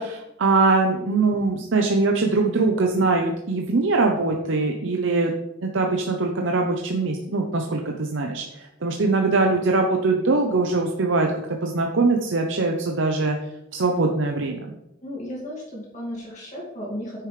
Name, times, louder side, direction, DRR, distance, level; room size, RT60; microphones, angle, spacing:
voice 1, 0.0-5.3 5.6-11.3 11.6-13.4 13.7-14.7, right 3 dB, 70° right, 2 dB, 0.8 m, -22 dB
voice 2, 15.0-17.3, equal, 40° left, -5 dB, 2.1 m, -34 dB
9.4 x 6.5 x 3.3 m, 0.86 s
head